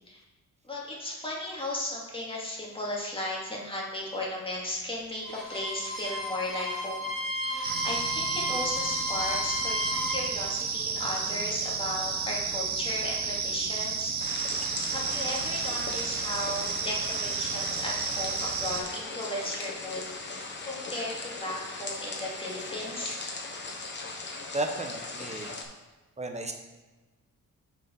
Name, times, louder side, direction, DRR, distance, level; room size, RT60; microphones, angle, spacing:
voice 1, 0.6-14.5 14.9-23.2, left 1 dB, 15° left, -4 dB, 2.3 m, -36 dB
Bowed string instrument, 5.2-10.2, left 2 dB, ahead, 2.4 m, -33 dB
sound 1, 7.6-18.8, right 5 dB, 60° right, 1.0 m, -32 dB
sound 2, 14.2-25.6, left 3 dB, 35° left, 1.3 m, -39 dB
voice 2, 24.5-25.5 26.2-26.5, right 2 dB, 20° right, 4 dB, 1.0 m, -33 dB
6.6 x 4.9 x 5.3 m, 1.2 s
cardioid pair, 95°, 32 cm